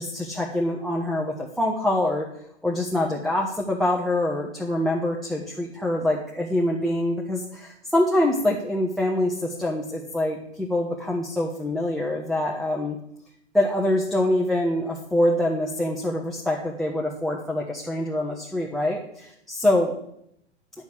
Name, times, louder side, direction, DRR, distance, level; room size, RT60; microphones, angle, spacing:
voice 1, 0.0-2.3 2.6-13.0 13.5-19.9, left 1 dB, ahead, -1 dB, 1.2 m, -25 dB
10.0 x 6.4 x 8.5 m, 0.75 s
figure-of-eight pair, 105°, 34 cm